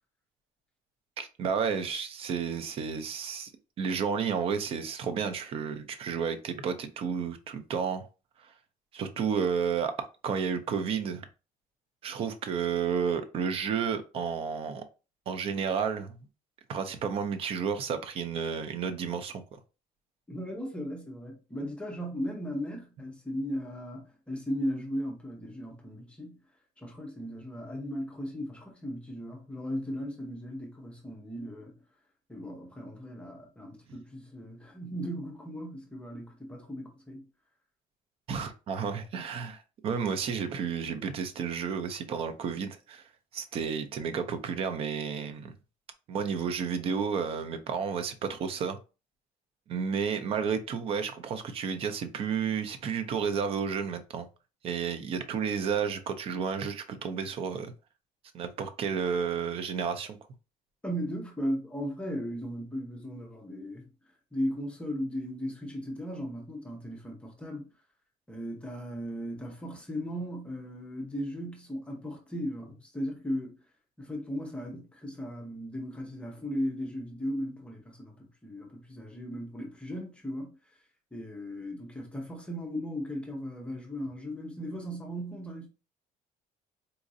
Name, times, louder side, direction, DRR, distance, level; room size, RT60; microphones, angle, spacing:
voice 1, 1.2-3.5 3.8-8.1 8.4-8.5 8.9-9.9 10.2-11.2 12.0-14.8 15.3-16.2 16.7-19.4 38.3-43.0 43.3-45.5 46.1-48.8 49.7-54.3 54.6-57.7 58.3-60.2, right 6 dB, 40° right, 0.5 m, -31 dB
voice 2, 20.3-26.4 26.8-31.8 32.3-37.3 60.8-63.9 64.3-67.7 68.3-73.6 74.0-80.6 81.1-85.7, equal, 5° left, 0.6 m, -37 dB
4.0 x 2.5 x 2.6 m
cardioid pair, 180°, 15 cm